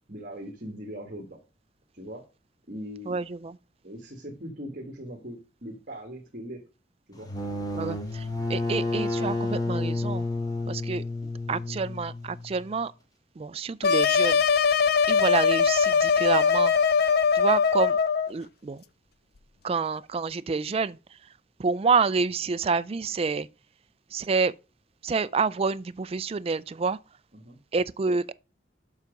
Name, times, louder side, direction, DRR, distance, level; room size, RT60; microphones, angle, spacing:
voice 1, 0.1-1.4 1.9-2.2 2.7-3.2 3.8-6.6 7.1-7.3 27.3-27.6, equal, 50° right, 1.7 m, -40 dB
voice 2, 3.1-3.5 7.7-10.2 10.7-11.0 11.5-12.9 13.4-14.4 15.1-16.7 17.3-18.0 18.3-18.8 19.6-21.0 21.6-23.5 24.1-24.5 25.0-27.0 27.7-28.3, right 4 dB, 35° right, 0.4 m, -28 dB
sound 1, 7.1-12.7, left 2 dB, 20° left, 1.5 m, -30 dB
sound 2, 13.8-18.3, left 6 dB, 60° left, 0.5 m, -21 dB
7.3 x 5.8 x 5.1 m
head